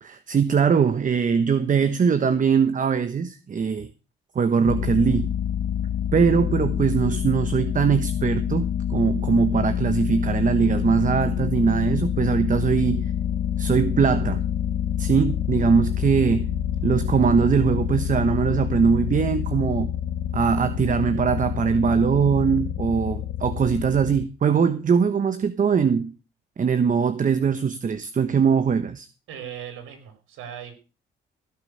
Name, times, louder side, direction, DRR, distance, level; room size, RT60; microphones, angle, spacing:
voice 1, 0.0-3.9 4.3-5.3 6.1-13.1 13.6-14.4 15.0-16.5 16.8-19.9 20.3-26.1 26.6-29.1, right 6 dB, 40° right, 1.2 m, -21 dB
sound 1, 4.7-24.3, left 10 dB, 80° left, 1.2 m, -27 dB
voice 2, 29.3-30.7, right 9 dB, 90° right, 4.2 m, -38 dB
17.0 x 6.6 x 6.4 m
cardioid pair, 90°, 20 cm